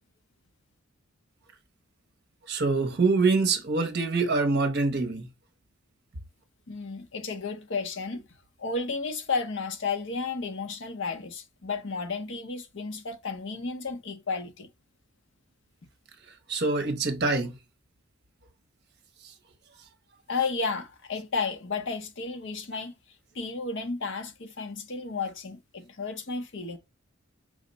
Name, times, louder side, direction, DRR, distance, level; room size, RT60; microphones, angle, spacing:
voice 1, 2.5-5.3 16.5-17.5, right 3 dB, 50° right, 0.7 m, -25 dB
voice 2, 6.7-8.3 8.6-14.7 20.3-22.9 23.3-26.8, left 4 dB, 55° left, 0.8 m, -32 dB
4.9 x 2.1 x 3.9 m
head